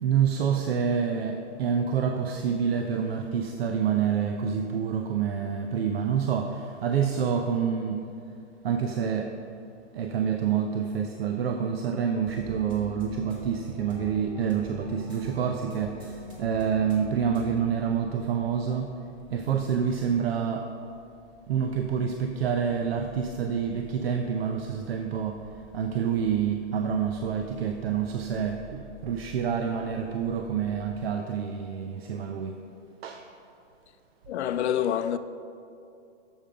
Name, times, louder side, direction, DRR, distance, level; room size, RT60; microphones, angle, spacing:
voice 1, 0.0-8.1 8.6-9.4 9.9-19.0 19.3-20.7 21.5-25.5 25.7-32.6 33.0-33.3, right 7 dB, 60° right, 0.6 m, -27 dB
sound 1, 12.3-17.4, left 3 dB, 15° right, 1.3 m, -44 dB
sound 2, 12.4-31.1, left 1 dB, 10° left, 2.1 m, -54 dB
voice 2, 34.3-35.2, left 10 dB, 65° left, 0.6 m, -26 dB
8.7 x 7.2 x 5.1 m
hypercardioid pair, 175°, 35 cm